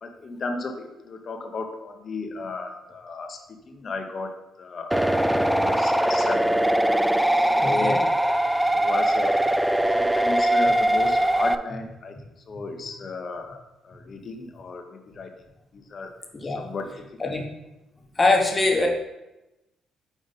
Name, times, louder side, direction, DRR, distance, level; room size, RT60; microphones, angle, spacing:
voice 1, 0.0-3.4 3.7-5.2 5.5-6.6 7.4-8.0 8.6-12.2 12.5-13.6 13.8-15.3 15.7-16.1 16.4-16.9 17.2-17.4, left 3 dB, 45° left, 4 dB, 0.9 m, -35 dB
sound 1, 4.9-11.6, right 1 dB, 5° right, 0.3 m, -21 dB
voice 2, 7.6-8.0 12.5-12.6 16.3-16.7 17.2-17.4 18.2-18.9, left 2 dB, 25° left, 1 dB, 1.2 m, -23 dB
5.1 x 5.1 x 4.1 m, 0.97 s
cardioid pair, 90°, 0 cm